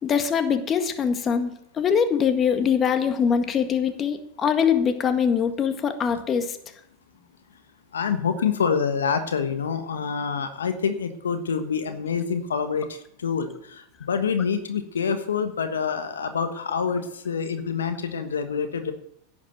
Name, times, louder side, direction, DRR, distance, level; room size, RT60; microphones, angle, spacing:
voice 1, 0.0-6.6, left 7 dB, 30° left, 8 dB, 1.7 m, -23 dB
voice 2, 7.9-18.9, left 6 dB, 90° left, 9 dB, 1.3 m, -26 dB
11.0 x 8.5 x 8.1 m, 0.72 s
hypercardioid pair, 100°, 0 cm